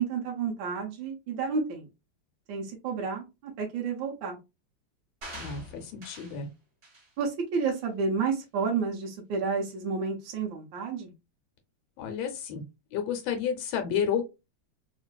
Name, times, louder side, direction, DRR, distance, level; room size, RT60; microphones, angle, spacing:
voice 1, 0.0-1.8 2.5-4.4 7.2-11.1, right 5 dB, 75° right, 0 dB, 1.5 m, -30 dB
sound 1, 5.2-6.4 6.8-7.1 7.6-7.8, equal, 40° right, 1.6 m, -44 dB
voice 2, 5.3-6.5 12.0-12.6 12.9-14.2, left 7 dB, 85° left, 5 dB, 1.4 m, -31 dB
3.7 x 2.4 x 2.2 m, 0.24 s
omnidirectional pair, 2.1 m